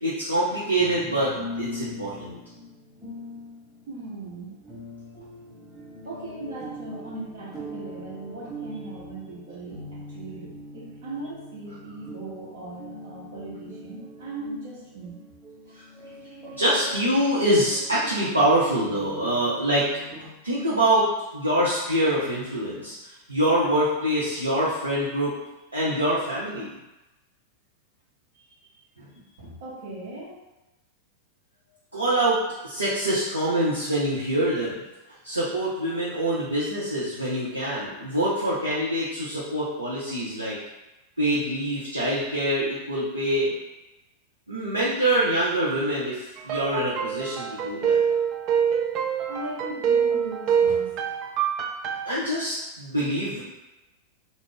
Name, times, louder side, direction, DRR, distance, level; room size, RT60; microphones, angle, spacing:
voice 1, 0.0-2.3 15.8-15.9 16.5-19.9 20.4-25.3 25.7-26.7 29.0-29.1 31.9-34.8 35.2-40.6 41.2-43.5 44.5-48.0 52.1-53.4, right 1 dB, 80° right, -8 dB, 0.6 m, -25 dB
sound 1, 0.8-20.3, left 1 dB, ahead, 1.0 m, -42 dB
voice 2, 3.9-4.5 6.0-15.2 29.4-30.3 49.3-50.9, right 2 dB, 55° right, -5 dB, 1.0 m, -38 dB
sound 2, 46.4-52.1, right 7 dB, 40° right, 0.3 m, -25 dB
2.4 x 2.0 x 3.7 m, 1.0 s
figure-of-eight pair, 90°, 0 cm